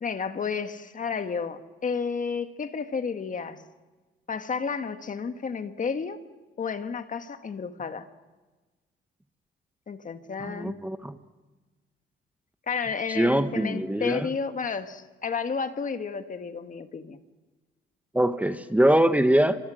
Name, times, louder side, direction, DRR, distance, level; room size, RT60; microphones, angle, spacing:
voice 1, 0.0-3.6 4.3-6.2 6.6-8.1 9.9-10.8 12.7-17.2, left 5 dB, 40° left, 9 dB, 1.6 m, -31 dB
voice 2, 10.4-11.1 13.1-14.3 18.1-19.6, right 1 dB, 5° right, 9 dB, 1.3 m, -23 dB
28.5 x 25.5 x 6.4 m, 1.2 s
cardioid pair, 90°, 20 cm